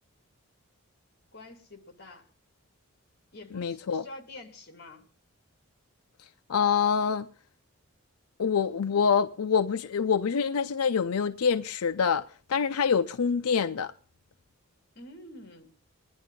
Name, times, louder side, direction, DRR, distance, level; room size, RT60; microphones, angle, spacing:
voice 1, 1.3-2.3 3.3-5.1 14.9-15.7, left 2 dB, 50° left, 2.4 m, -47 dB
voice 2, 3.5-4.0 6.5-7.3 8.4-13.9, left 6 dB, 90° left, 0.5 m, -26 dB
20.5 x 11.0 x 3.7 m
head